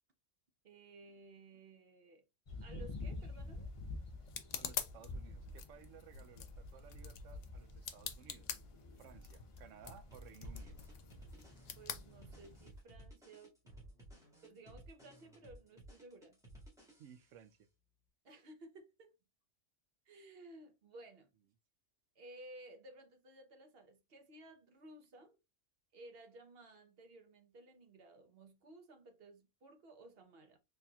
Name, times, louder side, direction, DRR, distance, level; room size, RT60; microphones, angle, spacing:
voice 1, 0.6-2.2 2.6-3.7 11.4-13.5 14.4-16.4 18.2-19.1 20.1-21.3 22.2-25.4 25.9-30.6, right 2 dB, 55° right, 1.0 m, -57 dB
sound 1, 2.5-12.7, left 2 dB, 30° left, 0.7 m, -49 dB
sound 2, 3.0-12.8, left 8 dB, 75° left, 1.0 m, -48 dB
voice 2, 4.5-8.5 9.0-10.8 17.0-17.7, right 8 dB, 80° right, 1.0 m, -58 dB
sound 3, 10.1-17.4, right 1 dB, 5° right, 1.9 m, -57 dB
4.2 x 3.3 x 2.3 m
omnidirectional pair, 1.3 m